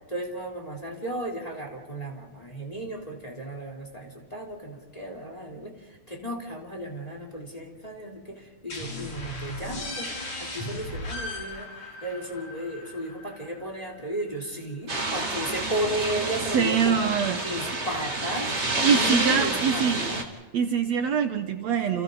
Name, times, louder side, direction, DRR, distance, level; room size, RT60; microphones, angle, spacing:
voice 1, 0.1-10.1 10.4-17.0 17.3-18.5 18.8-20.2, equal, 10° left, 0 dB, 3.3 m, -34 dB
sound 1, 8.7-14.2, left 1 dB, 85° left, 7.8 m, -37 dB
sound 2, 14.9-20.2, right 2 dB, 25° right, 2.6 m, -29 dB
voice 2, 16.5-17.4 18.8-20.1 20.5-22.0, right 7 dB, 65° right, 6 dB, 2.1 m, -24 dB
29.5 x 29.0 x 4.0 m, 1.3 s
omnidirectional pair, 3.5 m